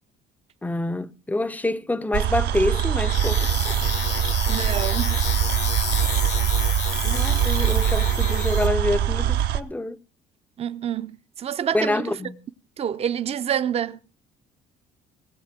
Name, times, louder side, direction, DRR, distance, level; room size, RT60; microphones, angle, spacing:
voice 1, 0.6-4.0 7.0-10.0 11.7-12.4, left 2 dB, 10° left, 0.6 m, -27 dB
sound 1, 2.1-9.6, right 10 dB, 75° right, 0.9 m, -23 dB
sound 2, 2.7-8.7, left 8 dB, 85° left, 2.6 m, -31 dB
voice 2, 4.5-5.2 10.6-11.1 11.4-12.1 12.8-14.0, right 9 dB, 35° right, 0.6 m, -27 dB
18.5 x 7.3 x 5.9 m
cardioid pair, 110°, 17 cm